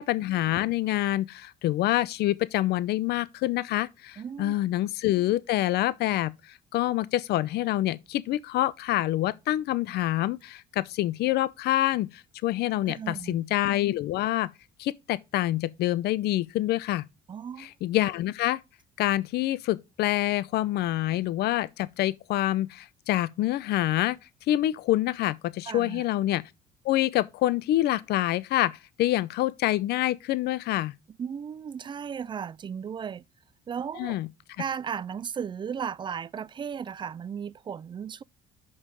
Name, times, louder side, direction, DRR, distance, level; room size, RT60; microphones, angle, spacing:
voice 1, 0.0-6.3 6.7-14.5 14.8-17.0 17.6-18.6 19.0-24.2 24.5-26.4 26.8-30.9 34.0-34.3, left 15 dB, 75° left, 0.6 m, -26 dB
voice 2, 4.2-4.5 12.9-13.4 17.3-17.7 25.7-26.0 31.2-33.2 33.7-34.2 34.6-38.2, right 7 dB, 30° right, 0.3 m, -35 dB
6.5 x 5.6 x 5.2 m
cardioid pair, 110°, 17 cm